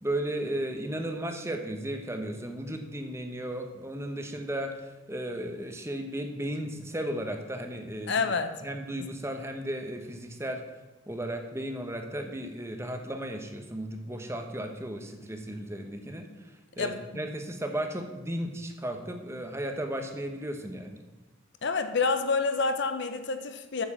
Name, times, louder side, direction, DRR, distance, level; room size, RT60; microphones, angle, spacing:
voice 1, 0.0-8.2 8.6-10.6 11.1-16.3 16.8-21.0, right 1 dB, 15° right, 5 dB, 1.0 m, -35 dB
voice 2, 8.1-8.6 16.8-17.2 21.6-23.8, left 4 dB, 55° left, 8 dB, 0.8 m, -28 dB
8.5 x 7.0 x 7.2 m, 1.2 s
head